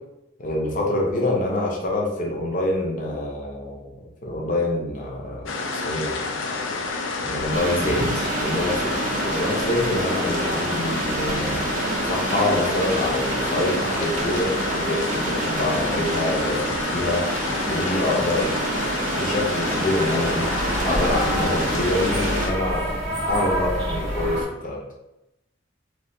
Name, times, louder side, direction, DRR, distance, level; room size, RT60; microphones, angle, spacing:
voice 1, 0.4-3.9 4.2-6.1 7.2-11.6 12.0-17.3 17.6-18.6 19.1-20.5 20.8-22.9 23.3-24.8, left 1 dB, 45° left, -2 dB, 0.6 m, -26 dB
sound 1, 5.5-22.5, left 3 dB, 85° left, 0.4 m, -29 dB
sound 2, 7.4-24.4, equal, 5° left, 0.7 m, -32 dB
sound 3, 7.5-22.5, right 2 dB, 40° right, 0.4 m, -28 dB
3.2 x 2.4 x 2.6 m, 0.91 s
head